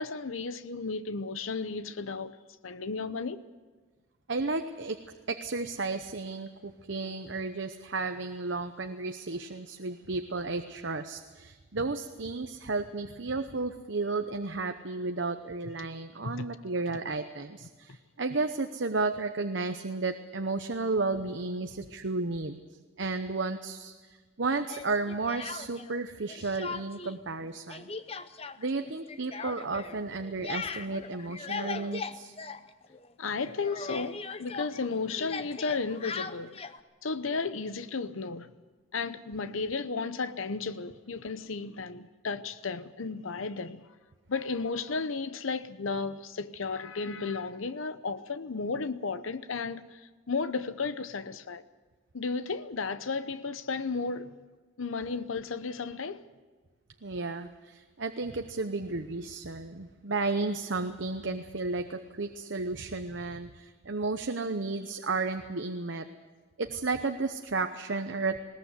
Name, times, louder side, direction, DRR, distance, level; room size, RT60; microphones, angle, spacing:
voice 1, 0.0-2.4 2.6-3.4 15.8-15.9 16.2-16.5 33.2-36.6 37.0-38.5 38.9-43.9 44.3-50.0 50.3-51.6 52.1-54.3 54.8-56.2, left 4 dB, 85° left, 0.8 m, -34 dB
voice 2, 4.3-22.6 23.0-23.9 24.4-27.9 28.6-32.4 57.0-66.1 66.6-68.4, right 3 dB, 65° right, 0.9 m, -33 dB
Speech, 24.7-26.0 26.3-27.2 27.4-33.1 33.4-36.8, left 5 dB, 30° left, 0.7 m, -39 dB
20.5 x 18.5 x 8.1 m
head